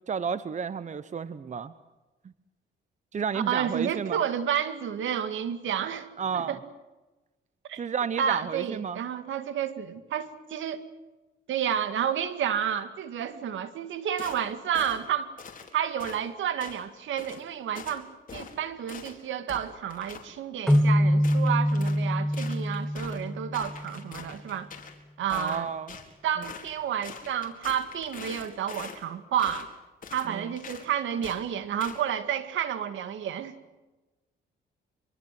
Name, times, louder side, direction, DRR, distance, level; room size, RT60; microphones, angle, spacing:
voice 1, 0.1-1.7 3.1-4.2 6.2-6.6 7.7-9.0 25.3-26.0 30.2-30.6, right 6 dB, 35° right, 1.0 m, -32 dB
voice 2, 3.3-6.1 6.3-6.6 7.7-7.8 8.2-10.8 11.5-15.3 15.7-24.7 25.2-25.7 26.2-29.7 30.1-33.6, right 9 dB, 75° right, 2.2 m, -30 dB
sound 1, 14.2-14.4 14.7-15.0 15.4-15.7 16.0-16.2 16.6-16.8 17.2-17.4 17.8-18.0 18.3-18.6 18.9-19.2 19.5-20.3 20.7-20.9 21.2-22.0 22.3-23.2 23.5-25.0 25.3-26.1 26.4-26.7 27.0-29.0 29.4-29.7 30.0-30.3 30.6-30.9 31.2-31.4 31.8-32.0, left 6 dB, 45° left, 4.5 m, -43 dB
sound 2, 20.7-24.2, equal, ahead, 1.0 m, -25 dB
25.5 x 23.0 x 7.7 m
cardioid pair, 90°, 20 cm